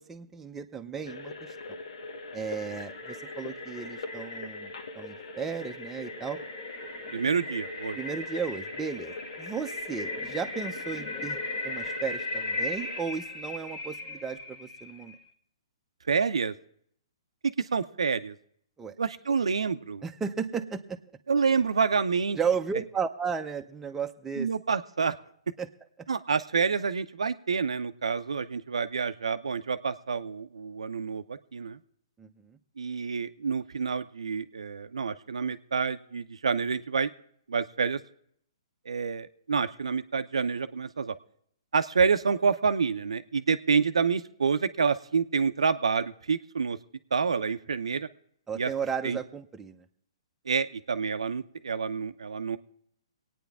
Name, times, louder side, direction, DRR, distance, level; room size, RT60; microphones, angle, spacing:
voice 1, 0.0-1.8 2.3-4.7 4.9-6.4 7.9-11.4 11.6-15.1 18.8-18.9 20.0-21.0 22.4-24.5 25.6-25.7 32.2-32.6 48.5-49.8, right 6 dB, 10° right, 4 dB, 0.7 m, -34 dB
sound 1, 1.0-13.0, left 2 dB, 70° left, 1.2 m, -43 dB
sound 2, 1.8-15.2, left 2 dB, 30° left, 1.5 m, -38 dB
voice 2, 7.1-8.0 16.1-16.5 17.4-18.3 19.0-20.0 21.3-22.4 24.4-25.2 26.1-31.8 32.8-37.1 37.5-38.0 38.9-41.1 41.7-46.8 47.1-48.1 48.5-48.7 49.0-49.2 50.5-52.6, right 5 dB, 80° right, 10 dB, 0.6 m, -28 dB
23.5 x 9.2 x 3.5 m, 0.67 s
hypercardioid pair, 135°, 3 cm